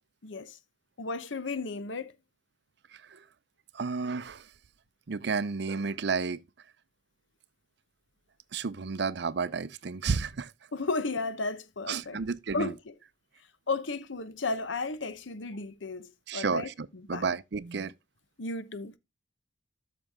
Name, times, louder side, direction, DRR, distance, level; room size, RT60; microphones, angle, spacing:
voice 1, 0.2-0.6 1.0-2.1 10.7-12.3 12.5-12.9 13.7-17.3 18.4-19.0, left 3 dB, 85° left, 0.9 m, -34 dB
voice 2, 3.7-4.4 5.1-6.4 8.5-10.5 11.9-12.7 16.3-16.7 17.1-17.9, right 5 dB, 65° right, 0.6 m, -31 dB
13.0 x 6.0 x 3.6 m
head